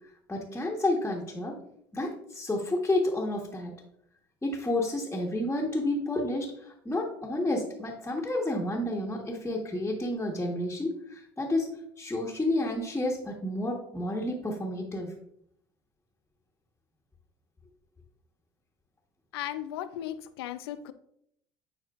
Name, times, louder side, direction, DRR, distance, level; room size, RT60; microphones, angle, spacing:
voice 1, 0.3-1.5 1.9-3.7 4.4-11.7 12.0-15.1, left 1 dB, 15° left, -3 dB, 1.4 m, -30 dB
voice 2, 19.3-20.9, left 12 dB, 80° left, 12 dB, 0.5 m, -36 dB
9.8 x 4.2 x 2.5 m, 0.72 s
hypercardioid pair, 65°, 13 cm